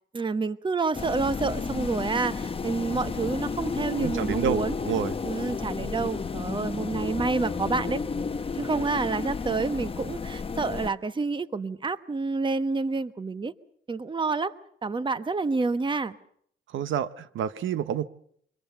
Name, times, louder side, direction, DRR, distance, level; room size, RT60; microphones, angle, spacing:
voice 1, 0.1-4.8 5.2-8.0 8.5-13.5 13.9-14.5 14.8-16.2, right 4 dB, 25° right, 14 dB, 1.2 m, -28 dB
sound 1, 0.9-10.9, left 4 dB, 30° left, 0.9 m, -32 dB
voice 2, 4.0-5.1 16.7-18.1, right 9 dB, 75° right, 14 dB, 1.0 m, -29 dB
25.0 x 21.5 x 6.9 m, 0.67 s
cardioid pair, 90°, 20 cm